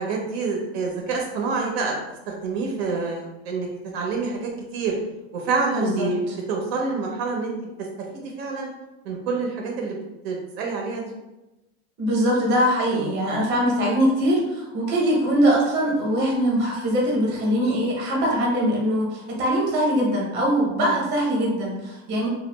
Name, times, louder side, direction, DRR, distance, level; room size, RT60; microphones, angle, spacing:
voice 1, 0.0-1.9 2.3-3.7 3.9-5.0 5.3-6.2 6.5-7.7 8.1-8.7 9.0-10.0 10.2-11.1 12.9-13.2 20.8-20.9 22.1-22.2, right 4 dB, 70° right, 0 dB, 0.7 m, -27 dB
voice 2, 5.7-6.3 12.0-22.3, equal, 35° right, -2 dB, 0.9 m, -22 dB
2.9 x 2.4 x 3.3 m, 1.0 s
cardioid pair, 175°, 32 cm